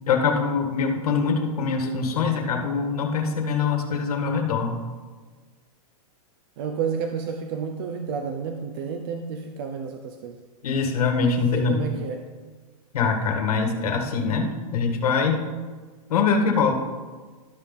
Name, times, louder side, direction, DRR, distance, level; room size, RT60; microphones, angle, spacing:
voice 1, 0.1-4.8 10.6-11.9 12.9-15.4 16.1-16.7, left 5 dB, 80° left, 2 dB, 1.9 m, -23 dB
voice 2, 6.6-10.4 11.5-12.3, right 6 dB, 40° right, 5 dB, 0.6 m, -30 dB
13.0 x 5.8 x 3.7 m, 1.4 s
supercardioid pair, 170°, 19 cm